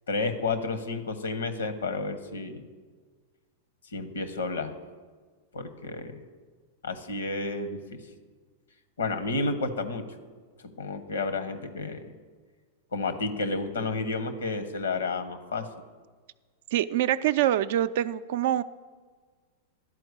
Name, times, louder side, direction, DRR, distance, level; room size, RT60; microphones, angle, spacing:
voice 1, 0.1-2.6 3.9-4.7 5.5-6.2 6.8-8.0 9.0-10.0 10.8-12.1 12.9-15.7, left 3 dB, 85° left, 11 dB, 0.9 m, -31 dB
voice 2, 16.7-18.6, right 12 dB, 65° right, 14 dB, 0.3 m, -25 dB
11.5 x 4.6 x 8.0 m, 1.5 s
hypercardioid pair, 105°, 0 cm